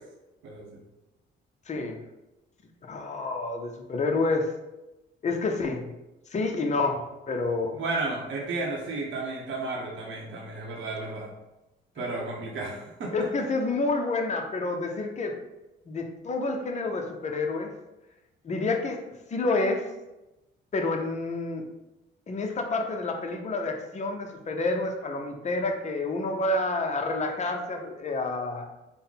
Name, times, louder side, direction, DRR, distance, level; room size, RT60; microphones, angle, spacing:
voice 1, 0.4-0.8 7.7-11.3 12.0-13.1, right 3 dB, 75° right, -2 dB, 0.9 m, -33 dB
voice 2, 1.7-2.0 2.8-4.5 5.2-5.9 6.3-7.8 13.1-15.3 15.9-17.7 18.4-19.0 19.3-19.8 20.7-21.6 22.3-28.6, left 3 dB, 35° left, 3 dB, 0.6 m, -28 dB
3.7 x 2.1 x 3.8 m, 0.97 s
cardioid pair, 90°, 20 cm